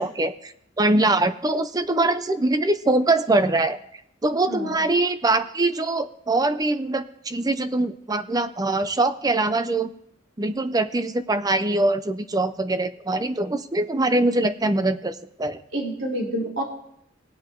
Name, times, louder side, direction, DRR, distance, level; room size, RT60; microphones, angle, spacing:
voice 1, 0.0-3.8 4.2-9.9 10.4-15.6, right 2 dB, 20° right, 12 dB, 0.5 m, -23 dB
voice 2, 4.5-4.8 15.7-16.6, right 1 dB, 75° right, -2 dB, 3.6 m, -28 dB
19.0 x 7.7 x 3.7 m, 0.73 s
head